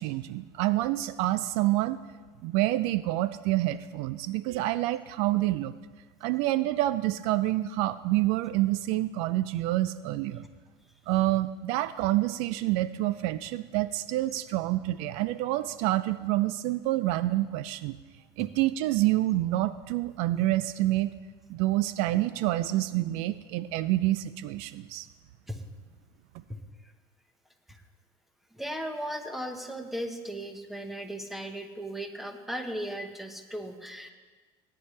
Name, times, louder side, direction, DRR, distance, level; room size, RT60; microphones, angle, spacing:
voice 1, 0.0-2.0 2.4-5.7 6.2-10.4 11.1-18.0 18.4-21.1 21.5-25.1, right 16 dB, 65° right, 15 dB, 0.4 m, -27 dB
voice 2, 28.5-34.1, equal, ahead, 5 dB, 1.0 m, -36 dB
17.5 x 9.9 x 3.3 m, 1.4 s
supercardioid pair, 135°, 11 cm